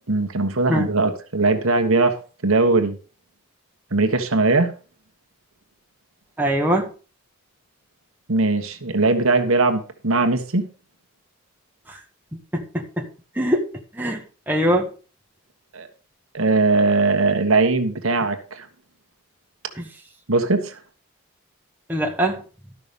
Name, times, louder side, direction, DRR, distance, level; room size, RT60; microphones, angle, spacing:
voice 1, 0.1-2.2 2.4-3.0 3.9-4.7 8.3-10.7 15.7-15.9 16.3-18.7 20.3-20.8, right 3 dB, 70° right, 1.4 m, -20 dB
voice 2, 6.4-6.9 11.9-12.0 12.3-13.1 13.3-14.9 19.7-19.9 21.9-22.4, equal, 10° right, 1.3 m, -23 dB
12.5 x 5.9 x 5.3 m
head